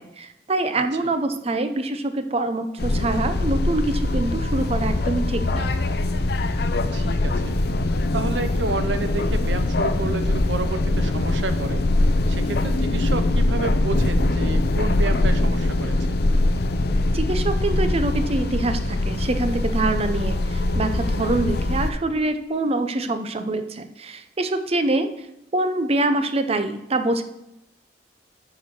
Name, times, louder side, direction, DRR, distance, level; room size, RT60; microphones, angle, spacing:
voice 1, 0.0-5.7 17.1-25.3 25.5-27.2, right 2 dB, 35° right, 9 dB, 0.6 m, -25 dB
sound 1, 2.8-21.9, left 2 dB, 60° left, 0.7 m, -22 dB
voice 2, 6.9-7.6 8.1-11.8 12.3-16.2, right 3 dB, 85° right, 10 dB, 0.8 m, -30 dB
9.8 x 4.6 x 6.0 m, 0.87 s
head